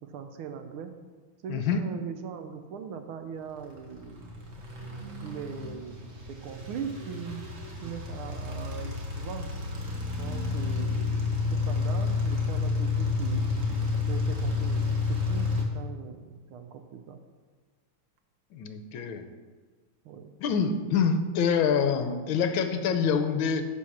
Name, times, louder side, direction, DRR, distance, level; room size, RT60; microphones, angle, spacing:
voice 1, 0.0-0.9 1.4-4.3 5.2-6.0 6.3-7.4 7.8-9.5 10.1-13.5 14.1-15.0 15.3-17.2 20.0-20.3, right 7 dB, 75° right, 7 dB, 1.6 m, -40 dB
voice 2, 1.5-1.8 18.5-19.3 20.4-23.7, left 6 dB, 70° left, 8 dB, 1.5 m, -26 dB
sound 1, 3.7-15.6, left 4 dB, 40° right, 1.7 m, -30 dB
10.0 x 4.7 x 7.2 m, 1.5 s
omnidirectional pair, 2.4 m